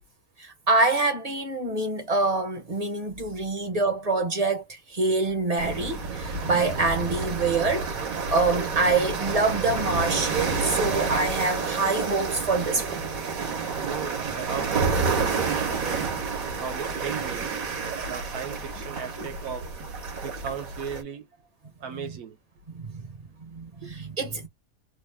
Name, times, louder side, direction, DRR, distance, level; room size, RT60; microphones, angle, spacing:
voice 1, 0.4-7.9 8.3-12.9 19.2-19.3 21.9-22.1 22.7-23.0 23.4-24.5, right 3 dB, 35° right, 0.7 m, -26 dB
sound 1, 5.6-21.0, right 5 dB, 70° right, 1.5 m, -29 dB
voice 2, 13.8-16.1 16.6-17.6 18.1-20.0 20.2-21.3 21.8-22.4 23.8-23.9, right 6 dB, 85° right, 1.3 m, -36 dB
3.3 x 2.4 x 3.3 m
omnidirectional pair, 1.5 m